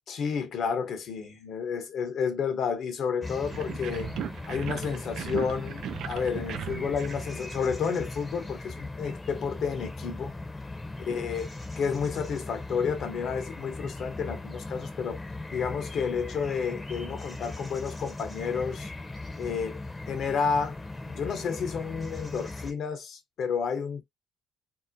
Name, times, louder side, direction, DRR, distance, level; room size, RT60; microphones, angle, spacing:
voice 1, 0.1-4.1 4.5-10.3 11.1-11.5 11.8-15.2 15.5-18.9 19.4-20.8 21.1-24.0, left 6 dB, 60° left, 0.8 m, -31 dB
sound 1, 3.2-22.7, left 2 dB, 20° left, 0.7 m, -39 dB
sound 2, 3.5-8.1, right 10 dB, 65° right, 0.3 m, -38 dB
2.7 x 2.0 x 2.5 m
supercardioid pair, 65°, 0 cm